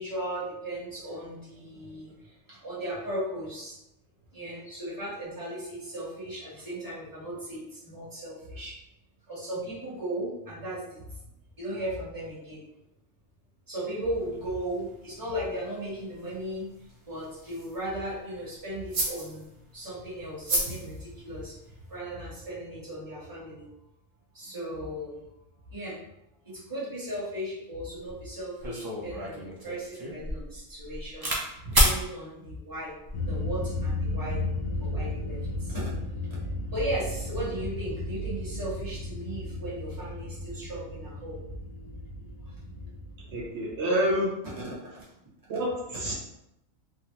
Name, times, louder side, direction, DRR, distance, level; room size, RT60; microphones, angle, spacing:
voice 1, 0.0-3.8 4.3-8.7 9.3-11.0 11.6-12.6 13.7-16.7 17.1-21.6 21.9-23.7 24.3-25.2 25.7-26.0 26.4-32.9 33.3-34.4 34.8-35.9 36.7-41.4 41.9-42.0 42.7-42.9 44.6-45.0, right 1 dB, 15° right, -8 dB, 1.1 m, -36 dB
sound 1, 14.1-22.0, right 1 dB, 90° right, 1.2 m, -38 dB
sound 2, 28.1-28.2 28.6-31.4 31.7-32.0 32.8-33.2, equal, 40° right, 0.3 m, -28 dB
sound 3, 33.1-43.4, left 1 dB, 70° left, 0.8 m, -34 dB
voice 2, 43.3-44.3 45.5-46.1, equal, 70° right, -5 dB, 0.9 m, -28 dB
3.5 x 2.0 x 2.8 m, 0.85 s
omnidirectional pair, 1.3 m